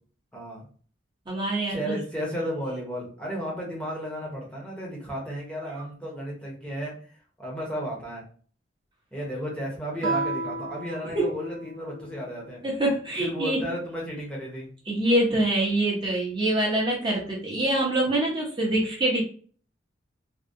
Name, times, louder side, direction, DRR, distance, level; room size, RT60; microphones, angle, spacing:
voice 1, 0.3-0.6 1.7-6.9 7.4-8.2 9.1-12.6 13.2-14.7, equal, 5° left, -3 dB, 0.8 m, -33 dB
voice 2, 1.3-1.9 11.0-11.2 12.6-13.6 14.9-19.2, right 1 dB, 25° right, -3 dB, 0.7 m, -25 dB
Guitar, 10.0-12.5, right 2 dB, 70° right, 0.5 m, -33 dB
3.5 x 2.3 x 2.6 m, 0.43 s
head